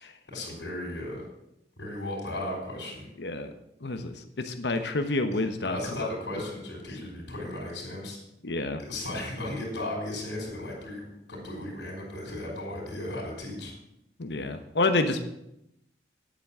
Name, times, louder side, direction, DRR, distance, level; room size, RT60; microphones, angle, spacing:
voice 1, 0.3-1.2 1.8-3.1 5.6-8.2 8.8-13.7, left 1 dB, 90° left, -4 dB, 4.4 m, -35 dB
voice 2, 3.2-3.5 3.8-6.1 8.4-8.8 14.2-15.4, left 2 dB, 75° left, 8 dB, 1.1 m, -29 dB
10.0 x 8.5 x 7.4 m, 0.83 s
head